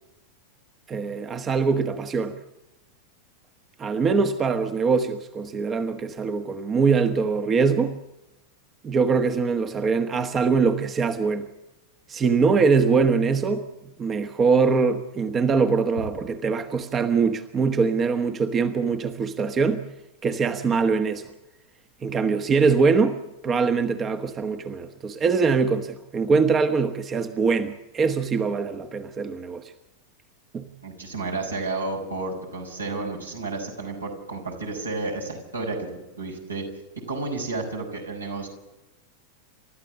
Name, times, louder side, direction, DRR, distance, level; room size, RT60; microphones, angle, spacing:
voice 1, 0.9-2.4 3.8-7.9 8.8-11.5 12.1-13.6 14.0-19.8 20.2-21.3 22.0-29.7 30.5-30.7, right 5 dB, 25° right, 9 dB, 1.3 m, -23 dB
voice 2, 30.8-35.9 36.2-36.6 37.1-38.5, right 3 dB, 80° right, 1 dB, 5.7 m, -31 dB
29.5 x 13.5 x 7.2 m, 0.97 s
figure-of-eight pair, 90°, 0 cm